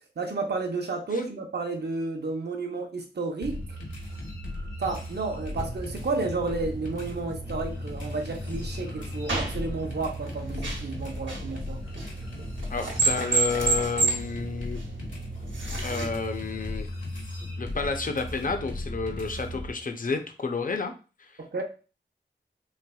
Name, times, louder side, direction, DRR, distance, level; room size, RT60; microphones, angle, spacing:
voice 1, 0.2-3.6 4.8-11.8 21.4-21.6, right 3 dB, 60° right, 3 dB, 0.6 m, -31 dB
sound 1, 3.4-19.7, left 1 dB, 85° left, 1.2 m, -37 dB
sound 2, 5.5-16.1, right 3 dB, 75° right, 0.9 m, -32 dB
voice 2, 12.7-14.8 15.8-16.9 17.6-20.9, left 4 dB, 45° left, 6 dB, 0.5 m, -30 dB
3.3 x 3.2 x 2.3 m, 0.34 s
wide cardioid pair, 70°, 19 cm